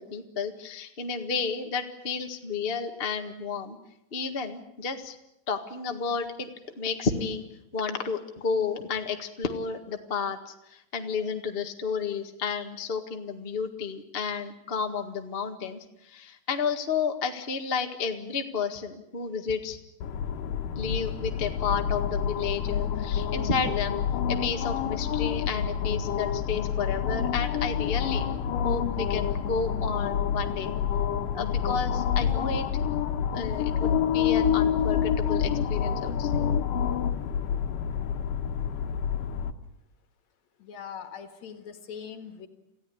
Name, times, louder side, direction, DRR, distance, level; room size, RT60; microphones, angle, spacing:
voice 1, 0.0-3.8 4.1-5.1 5.5-6.5 6.8-7.4 7.7-19.8 20.7-24.0 24.3-28.2 28.6-30.7 31.3-32.6 33.3-36.4, left 5 dB, 30° left, 5 dB, 1.2 m, -31 dB
sound 1, 20.0-39.5, left 8 dB, 80° left, 2.8 m, -28 dB
voice 2, 40.6-42.5, left 7 dB, 60° left, 8 dB, 2.8 m, -41 dB
27.5 x 15.5 x 9.9 m, 0.86 s
omnidirectional pair, 3.9 m